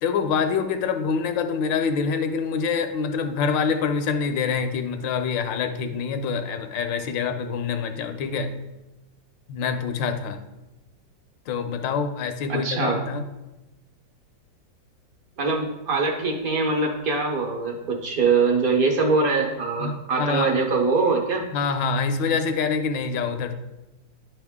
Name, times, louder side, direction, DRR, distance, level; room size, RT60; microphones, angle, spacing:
voice 1, 0.0-8.5 9.5-10.4 11.5-13.3 19.8-20.6 21.5-23.5, left 5 dB, 80° left, 7 dB, 1.3 m, -26 dB
voice 2, 12.5-13.0 15.4-21.5, right 4 dB, 55° right, 1 dB, 1.3 m, -23 dB
10.0 x 3.5 x 3.5 m, 1.0 s
omnidirectional pair, 2.0 m